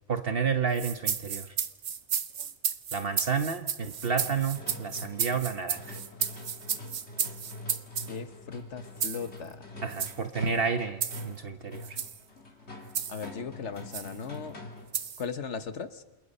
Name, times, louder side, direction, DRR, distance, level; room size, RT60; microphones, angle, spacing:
voice 1, 0.1-1.5 2.9-6.0 9.8-12.0, right 6 dB, 55° right, 8 dB, 1.2 m, -30 dB
sound 1, 0.7-8.1 9.0-9.3 9.9-10.2 11.0-11.3 11.8-12.2 13.0-13.3 13.9-14.1 14.9-15.2, right 7 dB, 85° right, 1.4 m, -33 dB
sound 2, 3.8-15.0, left 2 dB, 70° left, 3.5 m, -44 dB
voice 2, 8.1-9.7 13.1-14.6 15.2-16.0, left 6 dB, 90° left, 11 dB, 1.6 m, -38 dB
28.0 x 28.0 x 5.5 m, 1.0 s
omnidirectional pair, 1.2 m